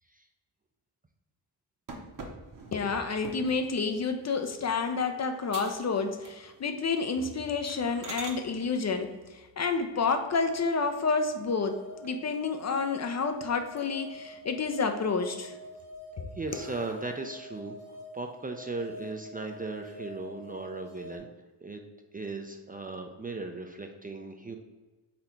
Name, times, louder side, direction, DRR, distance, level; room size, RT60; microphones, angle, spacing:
sound 1, 1.9-3.7 4.2-4.6 5.0-5.1 5.5-5.9 6.2-6.7 7.0-7.2 7.7-8.4 10.4-11.1 11.5-11.6 12.0-12.1 12.4-13.2 13.6-14.2 14.6-15.2 15.8-17.5, right 3 dB, 45° right, 1.0 m, -46 dB
voice 1, 2.7-15.6 16.2-16.3, left 4 dB, 40° left, 7 dB, 0.5 m, -29 dB
sound 2, 11.4-21.2, equal, 85° left, 1.3 m, -46 dB
voice 2, 16.3-21.3 21.6-21.8 22.1-24.6, right 3 dB, 20° right, 4 dB, 0.4 m, -37 dB
4.2 x 2.8 x 4.4 m, 1.2 s
cardioid pair, 75°, 44 cm